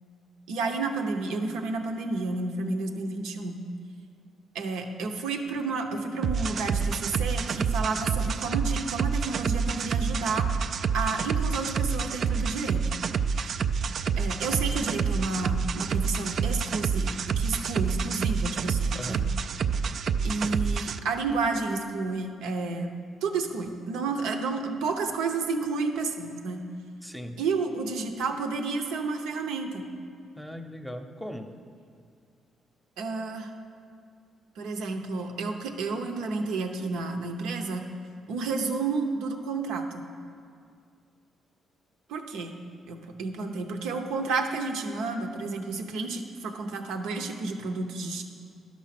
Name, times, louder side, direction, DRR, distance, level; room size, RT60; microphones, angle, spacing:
voice 1, 0.5-3.6 4.5-10.5 10.9-12.9 14.2-19.2 20.2-22.9 23.2-26.6 27.4-29.9 33.0-33.5 34.6-37.8 38.3-40.1 42.1-42.6 42.9-48.2, right 3 dB, 90° right, 5 dB, 0.8 m, -31 dB
sound 1, 6.2-21.0, right 6 dB, 55° right, 0.3 m, -28 dB
voice 2, 18.9-19.4 27.0-27.4 30.4-31.6, equal, 5° left, 6 dB, 0.8 m, -38 dB
11.5 x 6.2 x 5.9 m, 2.3 s
cardioid pair, 90°, 0 cm